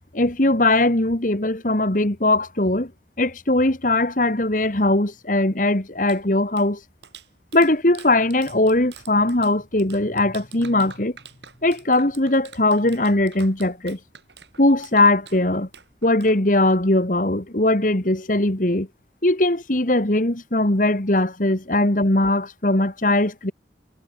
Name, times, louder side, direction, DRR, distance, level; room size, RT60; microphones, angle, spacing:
voice 1, 0.1-2.9 3.2-6.8 7.5-11.1 11.6-14.0 14.6-15.7 16.0-18.9 19.2-23.5, left 2 dB, 45° left, 2.0 m, -20 dB
Clapping, 6.0-16.9, right 7 dB, 80° right, 7.7 m, -47 dB
head